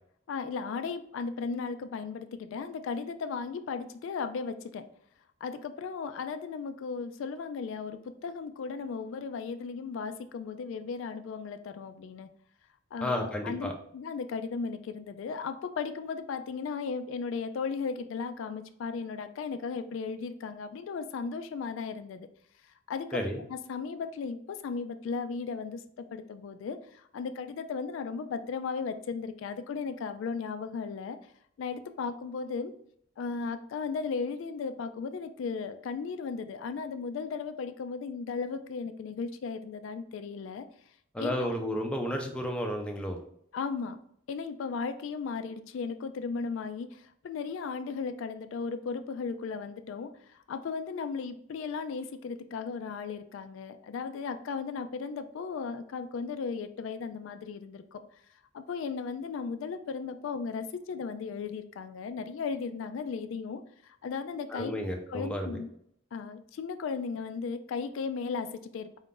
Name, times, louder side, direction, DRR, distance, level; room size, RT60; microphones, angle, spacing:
voice 1, 0.3-4.9 5.4-12.3 12.9-22.3 22.9-23.2 23.5-31.2 31.6-32.7 33.2-40.7 41.2-41.5 43.5-44.0 44.3-58.0 58.5-64.8 65.1-65.7 66.1-69.0, left 5 dB, 70° left, 9 dB, 0.3 m, -36 dB
voice 2, 13.0-13.7 23.1-23.4 41.1-43.2 64.5-65.6, equal, 5° left, 1 dB, 0.4 m, -32 dB
4.5 x 2.5 x 3.7 m, 0.69 s
head